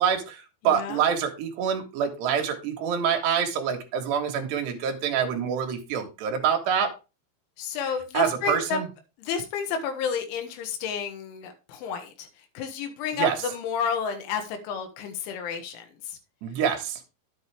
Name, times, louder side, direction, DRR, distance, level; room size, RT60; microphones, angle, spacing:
voice 1, 0.0-6.9 8.1-8.9 13.1-13.4 16.4-17.0, right 7 dB, 70° right, 3 dB, 3.4 m, -26 dB
voice 2, 0.6-1.0 7.6-8.8 9.2-12.3 12.6-16.2, left 6 dB, 80° left, 5 dB, 3.6 m, -31 dB
10.5 x 8.0 x 3.4 m, 0.29 s
omnidirectional pair, 5.5 m